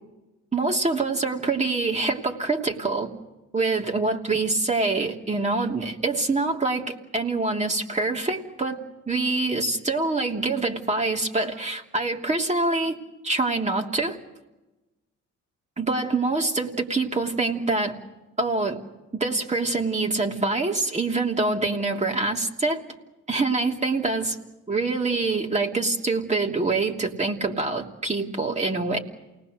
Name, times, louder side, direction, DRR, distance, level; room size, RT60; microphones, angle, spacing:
voice 1, 0.5-3.1 3.5-8.8 9.1-13.0 13.2-14.2 15.8-18.0 18.4-18.8 19.1-22.8 23.3-24.4 24.7-29.0, right 3 dB, 25° right, 1 dB, 3.0 m, -25 dB
28.5 x 19.5 x 6.6 m, 1.0 s
cardioid pair, 90°, 30 cm